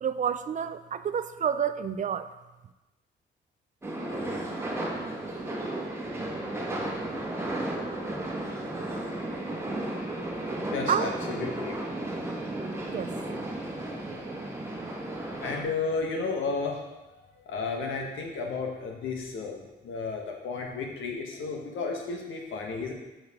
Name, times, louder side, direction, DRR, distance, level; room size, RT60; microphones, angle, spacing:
voice 1, 0.0-2.3 10.9-11.1 12.9-13.1, right 8 dB, 40° right, 11 dB, 0.4 m, -29 dB
sound 1, 3.8-15.6, right 1 dB, 10° right, 1.3 m, -34 dB
voice 2, 10.7-12.1 15.0-22.9, left 4 dB, 75° left, 1 dB, 1.3 m, -33 dB
6.4 x 6.3 x 3.6 m, 1.1 s
cardioid pair, 90°, 20 cm